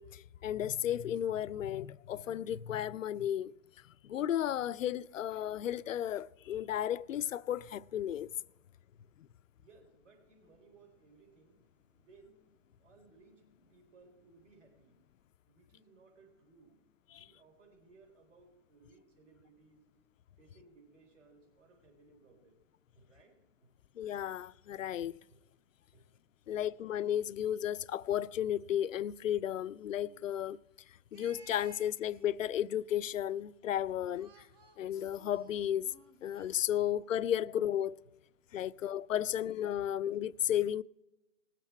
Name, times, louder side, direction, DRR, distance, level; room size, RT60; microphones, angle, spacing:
voice 1, 0.0-3.5 4.0-8.3 17.1-17.3 24.0-25.2 26.5-30.6 31.1-34.5 34.8-35.9 36.2-38.0 38.5-40.8, left 10 dB, 75° left, 0.5 m, -34 dB
voice 2, 9.6-15.0 15.5-19.8 20.4-22.6 22.9-23.7 25.3-25.5 25.9-26.1 37.4-37.6 38.0-38.3 38.6-38.9 39.2-39.4 39.8-40.0, right 4 dB, 65° right, 4.2 m, -63 dB
sound 1, 29.9-30.4 31.1-32.6 34.1-36.6, right 4 dB, 20° right, 0.5 m, -60 dB
20.0 x 7.6 x 4.4 m
hypercardioid pair, 135°, 40 cm